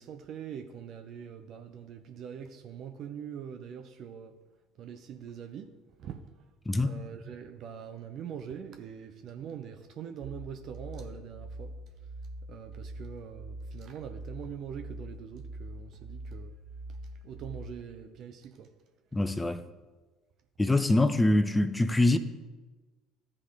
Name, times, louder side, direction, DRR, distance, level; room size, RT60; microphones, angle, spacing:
voice 1, 0.0-4.3 4.8-5.7 6.0-6.3 6.8-11.7 12.5-16.5 17.2-18.7, right 8 dB, 55° right, 0.6 m, -43 dB
sound 1, 10.2-17.7, right 1 dB, 15° right, 1.4 m, -43 dB
voice 2, 19.1-19.6 20.6-22.2, left 2 dB, 15° left, 0.6 m, -24 dB
14.0 x 4.9 x 3.5 m
hypercardioid pair, 60°, 0 cm